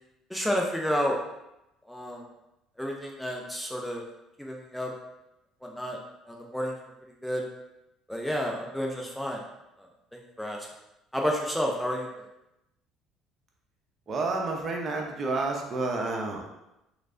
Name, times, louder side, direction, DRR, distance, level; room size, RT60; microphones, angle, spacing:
voice 1, 0.3-1.2 1.9-2.2 2.8-4.0 4.4-4.9 5.6-6.0 6.3-6.8 7.2-7.4 8.1-9.4 9.8-10.7 11.1-12.3, equal, 5° left, 0 dB, 0.5 m, -30 dB
voice 2, 14.1-16.5, right 3 dB, 40° right, 1 dB, 0.7 m, -30 dB
3.2 x 3.2 x 2.6 m, 0.89 s
supercardioid pair, 95°, 0 cm